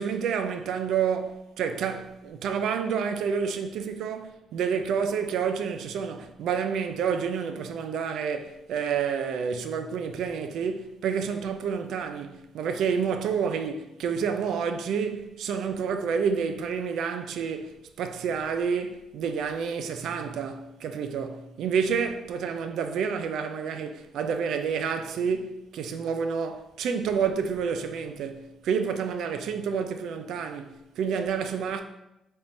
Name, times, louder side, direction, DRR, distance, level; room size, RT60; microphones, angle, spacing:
voice 1, 0.0-31.8, right 6 dB, 80° right, 0.3 m, -29 dB
4.1 x 3.6 x 2.6 m
cardioid pair, 90°, 0 cm